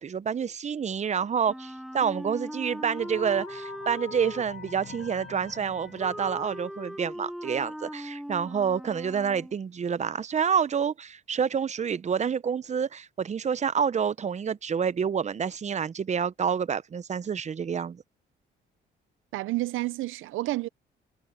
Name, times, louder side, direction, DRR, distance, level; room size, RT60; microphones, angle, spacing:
voice 1, 0.0-18.0, right 7 dB, 35° right, 0.7 m, -28 dB
Wind instrument woodwind instrument, 1.5-9.6, equal, ahead, 4.7 m, -40 dB
sound 1, 2.9-6.8, left 7 dB, 50° left, 7.6 m, -45 dB
voice 2, 19.3-20.7, right 18 dB, 80° right, 0.6 m, -30 dB
cardioid pair, 90°, 20 cm